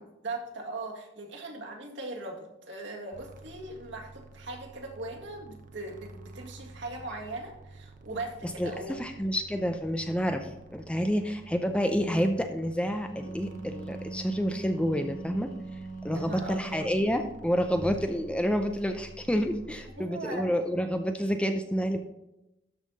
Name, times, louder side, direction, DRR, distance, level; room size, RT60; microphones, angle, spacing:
voice 1, 0.2-9.0 16.1-16.8 19.9-20.5, right 2 dB, 65° right, 0 dB, 1.9 m, -39 dB
sound 1, 3.1-19.9, right 2 dB, 40° right, 0.9 m, -50 dB
voice 2, 8.6-15.5 16.0-22.0, equal, 5° left, 6 dB, 0.5 m, -29 dB
Wind instrument woodwind instrument, 12.9-17.0, right 3 dB, 40° left, 1.5 m, -41 dB
12.5 x 5.6 x 4.1 m, 0.90 s
head